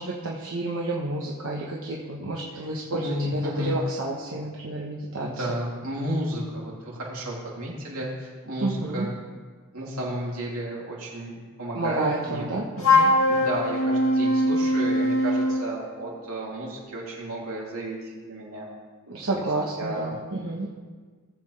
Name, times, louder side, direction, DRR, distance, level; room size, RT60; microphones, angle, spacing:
voice 1, 0.0-5.4 8.6-9.1 11.7-13.1 19.1-20.7, right 2 dB, 70° right, -3 dB, 1.2 m, -30 dB
voice 2, 2.9-3.8 5.2-9.1 9.7-12.5 13.3-18.7 19.3-19.4 19.8-20.1, right 1 dB, 90° right, -3 dB, 3.0 m, -32 dB
Wind instrument woodwind instrument, 12.8-15.7, left 1 dB, 65° left, 1.9 m, -21 dB
19.0 x 7.6 x 3.4 m, 1.5 s
head